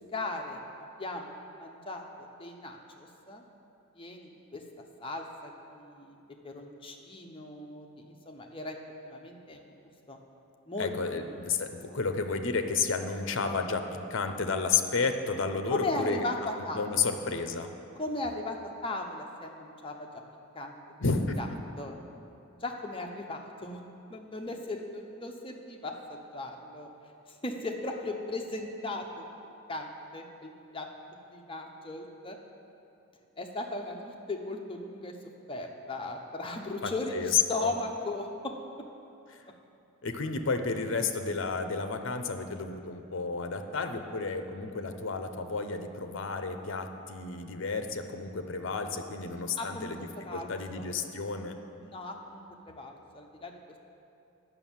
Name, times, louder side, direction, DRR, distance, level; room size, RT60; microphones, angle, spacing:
voice 1, 0.1-2.0 2.4-3.4 4.0-4.6 5.0-6.2 6.4-7.9 8.3-8.8 9.0-9.8 10.1-10.2 10.7-11.3 15.7-17.1 18.0-20.1 20.5-20.8 21.4-21.5 21.8-22.0 22.6-23.8 24.1-26.9 27.4-29.2 29.7-30.9 31.3-32.3 33.4-35.1 35.5-38.5 49.6-50.9 51.8-53.5, left 2 dB, 25° left, 2 dB, 0.7 m, -37 dB
voice 2, 10.8-13.8 14.1-16.3 16.6-17.7 21.0-21.4 36.8-37.7 39.3-39.4 40.0-51.6, left 4 dB, 60° left, 7 dB, 0.7 m, -31 dB
9.0 x 6.1 x 7.3 m, 2.7 s
head